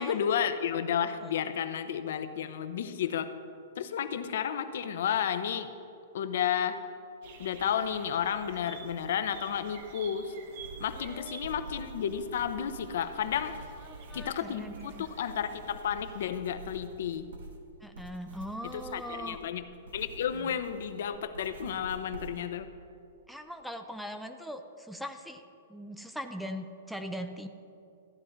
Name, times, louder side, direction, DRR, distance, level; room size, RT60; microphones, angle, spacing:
voice 1, 0.0-3.4 3.8-5.7 6.1-6.8 7.4-10.3 10.8-13.6 14.1-17.3 18.7-19.6 19.9-22.7, left 8 dB, 60° left, 10 dB, 0.8 m, -32 dB
sound 1, 7.2-16.3, right 5 dB, 45° right, 1.0 m, -50 dB
sound 2, 10.6-22.6, right 2 dB, 90° right, 1.6 m, -48 dB
voice 2, 11.0-11.4 13.9-15.1 17.8-19.4 20.3-20.5 23.3-25.4 25.7-27.5, equal, ahead, 7 dB, 0.4 m, -41 dB
14.0 x 10.5 x 4.0 m, 2.6 s
hypercardioid pair, 170°, 0 cm